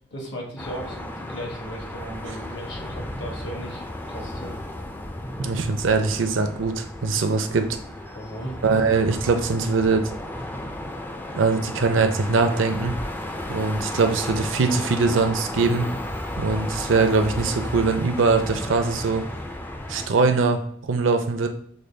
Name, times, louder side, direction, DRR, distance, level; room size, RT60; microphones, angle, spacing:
voice 1, 0.1-4.6 8.1-8.5, equal, 60° left, 0 dB, 1.1 m, -37 dB
sound 1, 0.6-20.1, left 1 dB, 10° left, 0.3 m, -33 dB
voice 2, 5.4-7.7 8.6-10.1 11.3-12.9 13.5-15.9 16.4-19.2 19.9-21.5, right 4 dB, 75° right, 6 dB, 0.5 m, -22 dB
6.3 x 2.2 x 3.3 m, 0.69 s
head